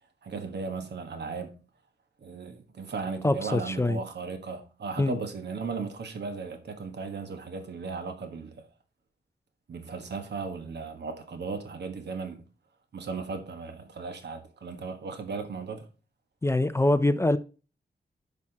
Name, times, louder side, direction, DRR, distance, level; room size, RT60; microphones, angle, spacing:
voice 1, 0.2-1.5 2.2-8.6 9.7-12.4 12.9-15.9, right 4 dB, 80° right, 1.4 m, -36 dB
voice 2, 3.2-4.0 5.0-5.2 16.4-17.4, left 2 dB, 15° left, 0.4 m, -24 dB
10.5 x 6.0 x 2.8 m
wide cardioid pair, 140°, 17 cm